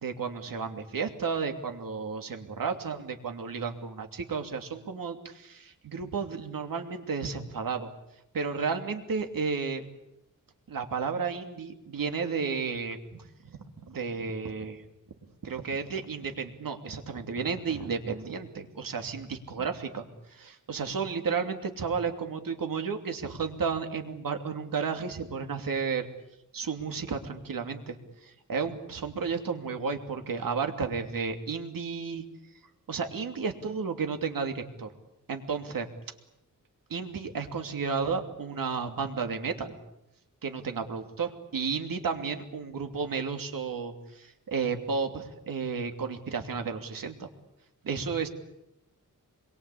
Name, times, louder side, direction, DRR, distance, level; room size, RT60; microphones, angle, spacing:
voice 1, 0.0-7.9 8.3-9.9 10.7-14.8 15.4-26.1 26.5-32.2 32.9-34.9 35.3-35.9 36.9-39.7 40.4-47.3 47.8-48.3, right 5 dB, 85° right, 5 dB, 2.9 m, -33 dB
27.0 x 22.5 x 8.6 m, 0.86 s
wide cardioid pair, 165°, 33 cm